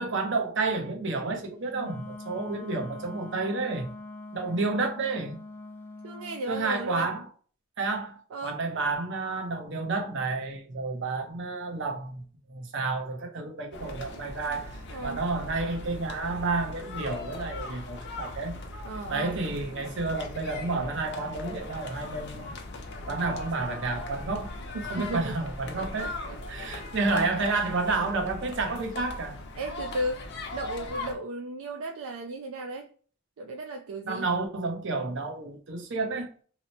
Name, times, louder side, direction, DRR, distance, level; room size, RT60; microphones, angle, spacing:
voice 1, 0.0-3.9 4.3-5.4 6.5-7.2 7.8-18.6 19.1-22.5 23.1-24.5 24.9-26.1 26.5-29.4 34.0-36.3, right 3 dB, 60° right, 0.8 m, -30 dB
Wind instrument woodwind instrument, 1.7-6.5, left 2 dB, 10° left, 0.3 m, -43 dB
voice 2, 6.0-7.1 8.3-8.6 14.9-15.2 18.8-19.4 24.7-25.4 25.8-27.3 29.6-32.9 33.4-34.3, right 2 dB, 75° right, 0.4 m, -35 dB
sound 1, 13.7-31.1, left 2 dB, 55° left, 0.6 m, -39 dB
2.9 x 2.0 x 4.1 m
head